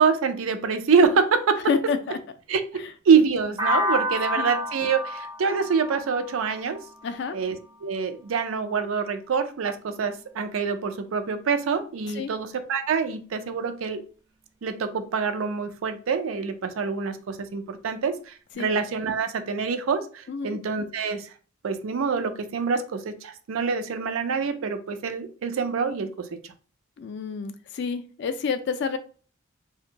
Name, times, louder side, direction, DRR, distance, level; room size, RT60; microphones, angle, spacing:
voice 1, 0.0-1.6 2.5-6.8 7.3-14.0 14.6-21.3 21.6-26.4, right 5 dB, 85° right, 8 dB, 0.4 m, -25 dB
voice 2, 1.7-2.2 4.4-4.5 7.0-7.3 12.1-12.3 18.6-18.7 20.3-20.6 27.0-29.0, left 5 dB, 60° left, 10 dB, 0.3 m, -28 dB
sound 1, 3.6-7.5, left 1 dB, 20° right, 0.4 m, -29 dB
2.5 x 2.1 x 2.8 m, 0.39 s
head